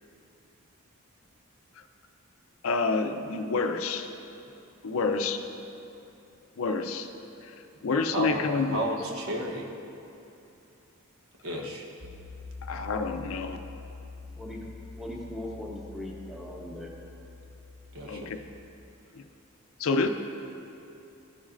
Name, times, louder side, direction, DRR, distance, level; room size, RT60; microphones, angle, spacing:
voice 1, 2.6-4.1 4.8-5.4 6.6-7.1 7.4-7.5 7.8-8.8 12.6-13.6 18.1-18.4 19.1-19.2 19.8-20.1, left 4 dB, 65° left, 7 dB, 0.5 m, -28 dB
voice 2, 8.1-9.7 11.4-11.9 17.9-18.3, right 1 dB, 70° right, 0 dB, 1.1 m, -32 dB
sound 1, 12.0-18.7, left 4 dB, 30° right, 0.7 m, -45 dB
voice 3, 14.4-14.7 15.0-16.9, left 1 dB, ahead, -2 dB, 0.9 m, -39 dB
14.0 x 7.1 x 2.5 m, 2.8 s
head